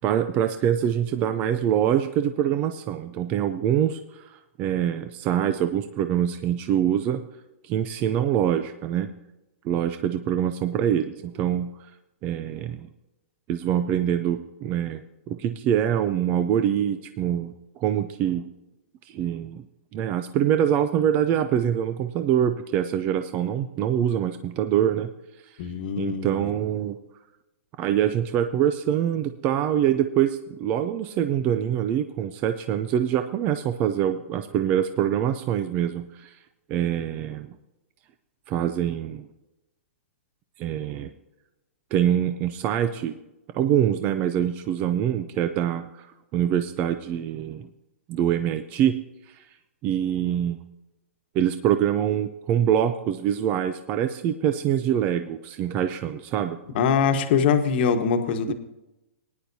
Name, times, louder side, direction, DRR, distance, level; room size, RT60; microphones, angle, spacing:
voice 1, 0.0-7.3 7.6-9.1 9.6-11.7 12.2-12.9 13.5-15.0 15.3-18.4 19.1-19.6 19.9-25.1 25.4-25.5 26.0-27.0 27.8-36.4 36.7-37.6 38.5-39.3 40.6-41.1 41.9-43.1 43.5-47.7 48.1-49.0 49.3-49.4 49.8-50.6 51.3-56.6 58.5-58.6, right 10 dB, 20° right, 9 dB, 0.4 m, -24 dB
voice 2, 25.6-26.5 56.7-58.5, left 6 dB, 45° left, 6 dB, 1.3 m, -23 dB
19.0 x 10.5 x 2.7 m, 0.94 s
hypercardioid pair, 160°, 8 cm